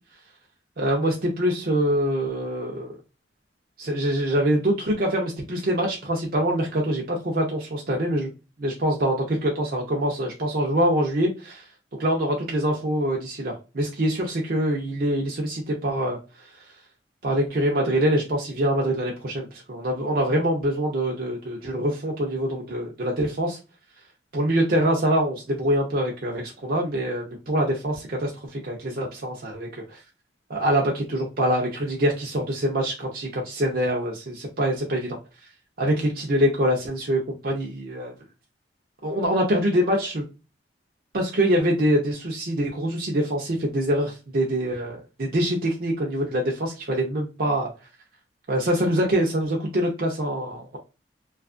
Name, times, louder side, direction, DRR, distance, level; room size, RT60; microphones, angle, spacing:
voice 1, 0.8-2.9 3.8-8.3 8.6-11.6 12.0-16.2 17.2-23.6 24.3-30.0 30.5-35.2 35.8-38.1 39.0-40.2 41.1-47.7 48.5-50.8, right 1 dB, 55° right, -1 dB, 0.7 m, -24 dB
2.8 x 2.4 x 2.4 m, 0.29 s
head